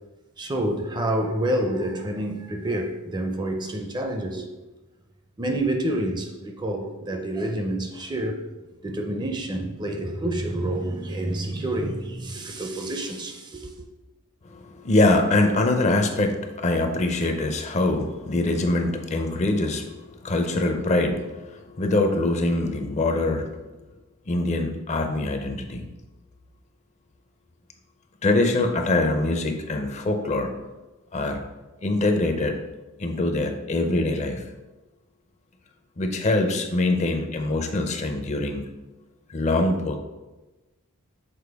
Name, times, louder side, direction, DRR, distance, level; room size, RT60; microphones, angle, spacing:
voice 1, 0.4-4.5 5.4-8.4 8.8-13.7, right 1 dB, 20° right, 0.5 m, -28 dB
voice 2, 14.4-23.5 24.3-25.8 28.2-30.5 31.1-31.4 31.8-32.6 33.0-34.4 36.0-38.7 39.3-40.0, left 2 dB, 30° left, 0.5 m, -24 dB
6.8 x 4.2 x 3.4 m
head